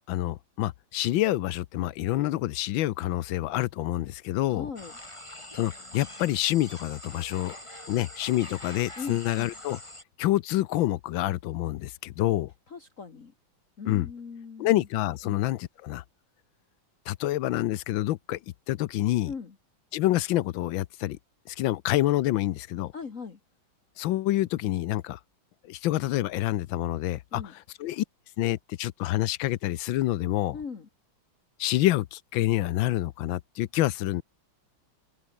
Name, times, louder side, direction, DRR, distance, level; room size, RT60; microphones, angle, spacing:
voice 1, 0.1-4.7 5.5-7.6 7.9-9.8 10.2-12.5 13.9-14.1 14.6-16.0 17.1-18.4 18.7-19.3 19.9-21.2 21.5-22.9 24.0-25.2 25.6-27.4 27.8-28.0 28.4-30.6 31.6-34.2, left 15 dB, 80° left, 1.4 m, -27 dB
voice 2, 4.5-4.9 9.0-9.5 12.7-13.3 13.8-14.9 15.2-15.4 19.3-19.6 22.9-23.4 27.3-27.5 30.5-30.9, left 5 dB, 40° left, 2.1 m, -39 dB
sound 1, 4.8-10.0, left 1 dB, 15° left, 5.2 m, -44 dB
open air
omnidirectional pair, 2.2 m